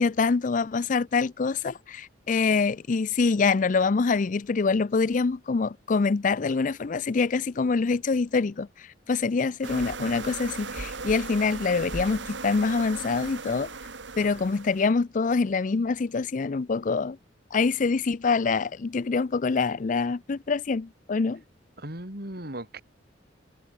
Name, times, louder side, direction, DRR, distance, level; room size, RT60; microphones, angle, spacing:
voice 1, 0.0-13.7 14.2-17.2 17.5-21.4, left 4 dB, 45° left, 0.4 m, -25 dB
sound 1, 9.6-14.9, right 4 dB, 80° right, 1.9 m, -37 dB
voice 2, 21.8-22.8, right 1 dB, 55° right, 6.9 m, -37 dB
head